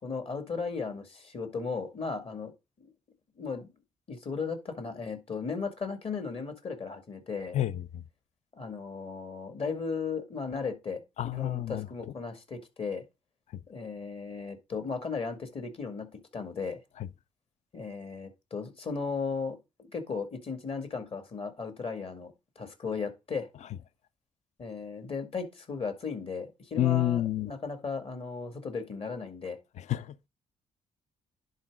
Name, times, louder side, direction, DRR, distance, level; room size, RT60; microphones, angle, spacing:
voice 1, 0.0-2.5 2.8-2.9 3.4-3.7 4.1-7.6 8.5-11.0 11.3-13.0 13.7-16.1 16.3-16.8 17.7-19.6 19.9-23.5 24.6-29.6, left 5 dB, 50° left, 2.1 m, -36 dB
voice 2, 7.5-8.0 11.2-11.9 13.5-13.6 17.0-17.1 26.8-27.5 29.8-30.3, left 13 dB, 65° left, 0.5 m, -29 dB
10.5 x 4.1 x 3.7 m
cardioid pair, 75°, 13 cm